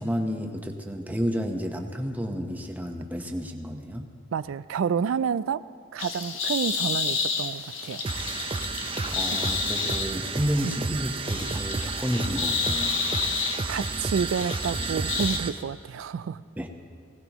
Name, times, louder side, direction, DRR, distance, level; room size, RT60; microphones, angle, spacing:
voice 1, 0.0-4.1 9.1-13.0 16.6-16.7, equal, 10° right, 2 dB, 1.0 m, -31 dB
voice 2, 4.3-5.7 5.9-8.0 10.6-10.7 13.7-16.4, right 6 dB, 80° right, 15 dB, 0.3 m, -29 dB
sound 1, 6.0-15.4, left 5 dB, 80° left, 1.1 m, -31 dB
sound 2, 8.0-15.6, right 4 dB, 25° right, 0.5 m, -32 dB
20.5 x 16.5 x 3.0 m, 2.2 s
head